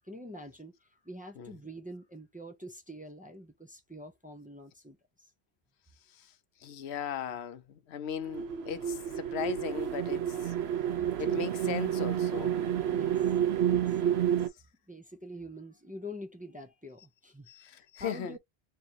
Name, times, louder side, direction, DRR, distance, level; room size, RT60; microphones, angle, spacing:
voice 1, 0.0-5.3 11.2-11.4 12.9-13.3 13.7-14.0 14.9-18.4, equal, 10° right, 0.8 m, -46 dB
voice 2, 6.6-10.5 11.2-12.5 14.0-14.2 17.5-18.4, left 8 dB, 80° left, 0.9 m, -38 dB
sound 1, 8.3-14.5, right 9 dB, 75° right, 0.9 m, -30 dB
3.6 x 3.3 x 2.7 m
omnidirectional pair, 1.1 m